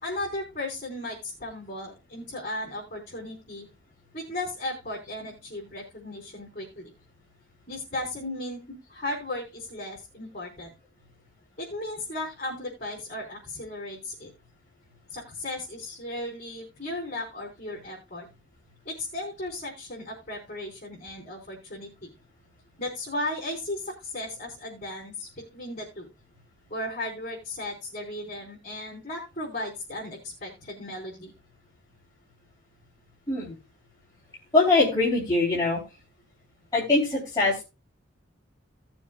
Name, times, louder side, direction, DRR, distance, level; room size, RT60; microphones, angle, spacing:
voice 1, 0.0-3.7 4.1-6.9 7.7-8.6 8.9-10.7 11.6-14.3 15.1-18.3 18.8-22.1 22.8-26.1 26.7-31.3, left 1 dB, 40° left, -4 dB, 4.2 m, -36 dB
voice 2, 34.5-35.8 36.7-37.6, left 3 dB, 20° left, -6 dB, 3.2 m, -22 dB
18.0 x 7.1 x 2.3 m, 0.27 s
head